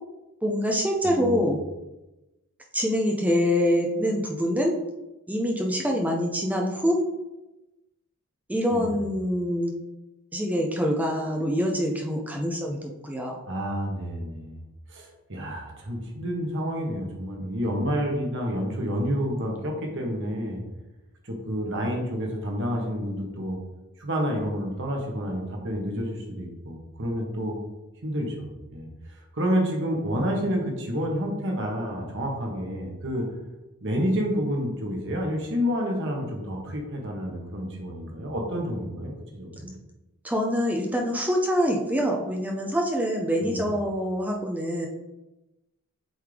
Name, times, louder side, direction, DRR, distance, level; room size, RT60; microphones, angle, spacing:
voice 1, 0.4-1.6 2.7-4.8 5.3-7.1 8.5-9.7 10.3-13.4 40.2-44.9, equal, 5° right, 0 dB, 0.5 m, -25 dB
voice 2, 1.0-1.5 8.7-9.0 13.5-14.6 14.9-20.6 21.2-23.6 24.0-27.6 28.0-33.3 33.8-39.7 43.4-43.7, equal, 55° right, 0 dB, 1.3 m, -29 dB
7.8 x 3.6 x 3.4 m, 1.0 s
head